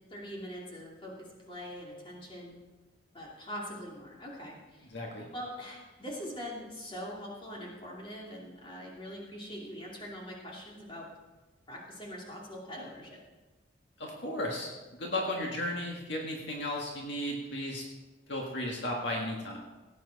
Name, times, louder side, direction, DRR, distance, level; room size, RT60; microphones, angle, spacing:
voice 1, 0.1-2.6 3.1-4.9 5.3-11.1 11.7-13.2, equal, 25° left, -3 dB, 2.7 m, -43 dB
voice 2, 4.9-5.3 14.0-17.8 18.3-19.6, left 1 dB, 60° left, -1 dB, 1.8 m, -35 dB
17.5 x 9.2 x 4.1 m, 1.2 s
head